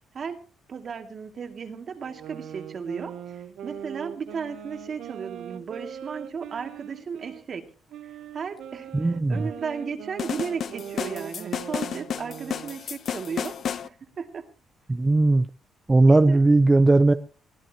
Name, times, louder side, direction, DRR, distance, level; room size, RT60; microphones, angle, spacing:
voice 1, 0.1-7.7 8.3-13.5 13.8-14.4 16.1-16.4, right 6 dB, 50° right, 2.6 m, -35 dB
sound 1, 2.0-7.4 7.9-12.8, right 9 dB, 80° right, 0.9 m, -41 dB
voice 2, 8.9-9.5 14.9-15.5 15.9-17.1, right 2 dB, 20° right, 0.8 m, -18 dB
sound 2, 10.2-13.9, left 8 dB, 60° left, 0.8 m, -32 dB
22.0 x 15.5 x 3.0 m
cardioid pair, 90°, 0 cm